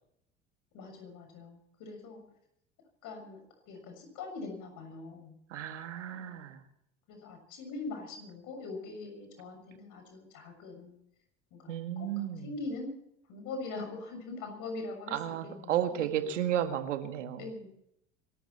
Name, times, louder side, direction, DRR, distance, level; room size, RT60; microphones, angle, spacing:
voice 1, 0.7-2.2 3.0-3.4 3.7-5.3 6.1-6.5 7.1-10.9 11.5-12.9 13.3-16.3 17.4-17.7, left 3 dB, 60° left, 5 dB, 6.5 m, -42 dB
voice 2, 5.5-6.6 11.7-12.5 15.1-17.5, right 10 dB, 80° right, 8 dB, 1.7 m, -33 dB
25.5 x 13.0 x 4.3 m, 0.76 s
hypercardioid pair, 65°, 36 cm